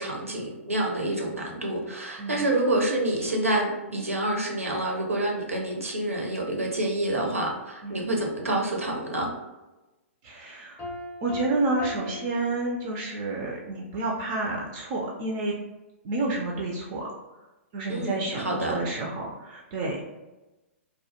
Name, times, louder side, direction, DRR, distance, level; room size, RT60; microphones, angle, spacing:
voice 1, 0.0-9.3 17.9-18.8, right 1 dB, 80° right, 0 dB, 0.6 m, -28 dB
voice 2, 10.2-10.8 11.2-15.6 16.0-17.1 17.7-20.2, right 2 dB, 35° right, -1 dB, 0.3 m, -30 dB
Piano, 10.8-13.3, left 1 dB, 20° left, 0.5 m, -39 dB
2.1 x 2.1 x 2.8 m, 1.1 s
figure-of-eight pair, 115°, 7 cm